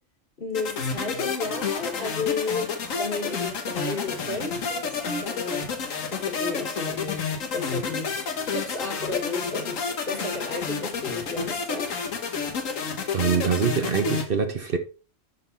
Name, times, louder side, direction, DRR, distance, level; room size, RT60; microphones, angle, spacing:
voice 1, 0.4-11.9, left 3 dB, 45° left, 2.0 m, -33 dB
sound 1, 0.5-14.2, left 5 dB, 85° left, 1.6 m, -30 dB
voice 2, 13.1-14.8, right 6 dB, 50° right, 1.0 m, -24 dB
10.5 x 3.9 x 4.1 m
omnidirectional pair, 1.3 m